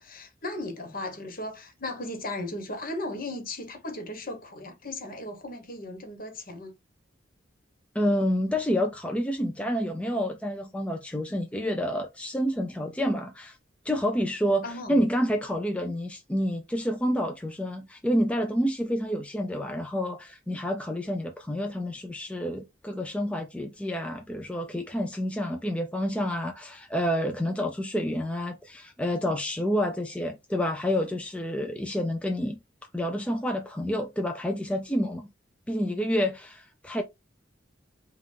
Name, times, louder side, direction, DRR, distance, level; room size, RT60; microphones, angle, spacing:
voice 1, 0.0-6.7 14.6-15.0, left 2 dB, 50° left, 1.2 m, -36 dB
voice 2, 7.9-13.6 13.8-32.6 32.9-35.3 35.7-37.0, equal, 5° left, 0.4 m, -28 dB
5.4 x 2.4 x 3.3 m
head